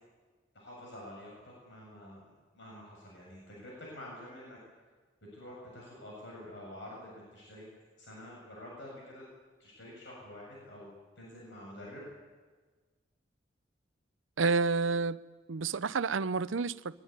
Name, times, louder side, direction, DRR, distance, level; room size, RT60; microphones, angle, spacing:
voice 1, 0.5-4.6 5.3-7.6 8.0-9.2 9.6-10.9 11.2-12.1, left 1 dB, 70° left, 8.0 m, -48 dB
voice 2, 14.4-15.2 15.5-16.9, right 4 dB, 85° right, 0.6 m, -29 dB
22.5 x 21.0 x 9.7 m
head